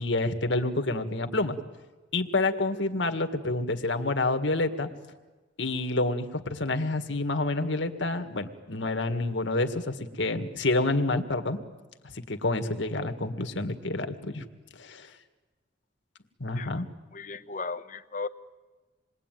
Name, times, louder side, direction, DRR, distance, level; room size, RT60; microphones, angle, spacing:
voice 1, 0.0-1.6 2.1-4.9 5.6-11.6 12.1-14.5 14.8-15.1 16.4-16.9, left 2 dB, 75° left, 7 dB, 1.9 m, -28 dB
voice 2, 17.1-18.3, left 4 dB, 45° left, 11 dB, 1.0 m, -36 dB
27.5 x 21.5 x 9.3 m, 1.3 s
head